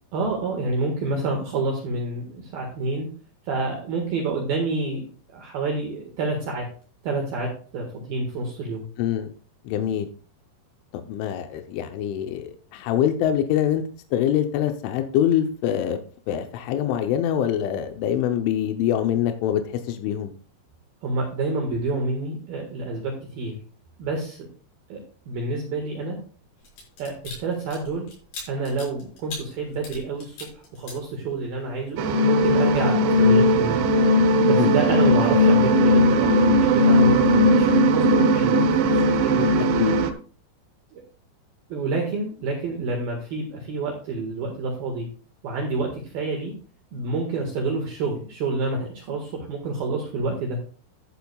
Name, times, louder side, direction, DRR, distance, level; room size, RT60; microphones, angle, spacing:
voice 1, 0.1-3.1 3.5-6.7 7.0-8.8 21.0-23.6 24.0-24.5 24.9-25.0 25.3-26.2 27.0-28.0 28.5-33.8 34.4-39.5 40.9-41.0 41.7-45.1 45.4-46.5 46.9-50.6, right 3 dB, 60° right, 1 dB, 3.1 m, -28 dB
voice 2, 9.0-9.3 9.6-10.1 10.9-13.8 14.1-16.0 16.3-20.3 34.6-34.7 39.4-40.0, left 10 dB, 85° left, 6 dB, 3.3 m, -24 dB
sound 1, 26.6-31.6 32.0-32.2, left 2 dB, 65° left, 8.2 m, -40 dB
sound 2, 32.0-40.1, equal, 75° right, 3.2 m, -18 dB
13.5 x 10.5 x 2.4 m, 0.41 s
omnidirectional pair, 5.4 m